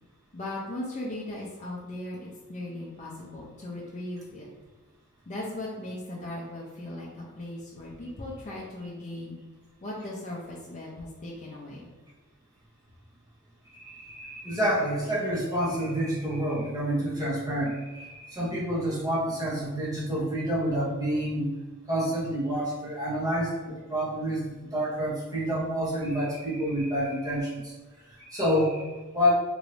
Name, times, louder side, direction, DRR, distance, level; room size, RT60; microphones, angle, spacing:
voice 1, 0.3-4.5 5.3-9.4 9.8-11.9, left 1 dB, 35° left, -4 dB, 0.5 m, -38 dB
voice 2, 13.7-21.5 21.9-27.7 28.1-29.3, equal, 15° right, -6 dB, 0.9 m, -28 dB
3.0 x 2.6 x 3.1 m, 1.3 s
head